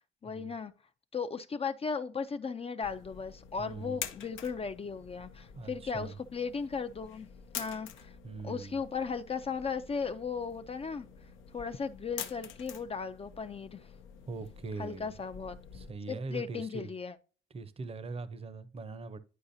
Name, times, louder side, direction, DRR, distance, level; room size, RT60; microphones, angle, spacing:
voice 1, 0.2-0.7 1.1-7.3 7.6-8.2 8.4-11.1 11.5-13.9 14.8-15.6 16.1-17.2, left 5 dB, 30° left, 0.5 m, -36 dB
sound 1, 2.8-15.9, left 8 dB, 80° left, 0.8 m, -47 dB
voice 2, 3.6-4.1 5.5-6.2 8.2-8.8 14.3-15.1 15.7-16.9 17.5-19.2, right 3 dB, 30° right, 0.7 m, -41 dB
10.0 x 4.8 x 2.7 m
cardioid pair, 90°, 20 cm